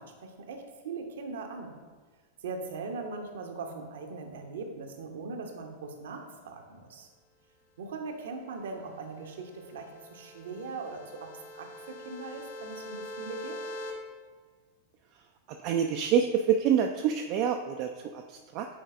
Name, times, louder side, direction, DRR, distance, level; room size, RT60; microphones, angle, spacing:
voice 1, 0.0-1.8 2.4-7.1 7.8-13.6, right 4 dB, 60° right, 4 dB, 0.8 m, -40 dB
sound 1, 9.0-13.9, left 1 dB, 70° left, 0.9 m, -43 dB
voice 2, 15.6-18.7, right 8 dB, 45° right, 4 dB, 0.3 m, -27 dB
8.6 x 4.6 x 2.5 m, 1.5 s
figure-of-eight pair, 90°, 0 cm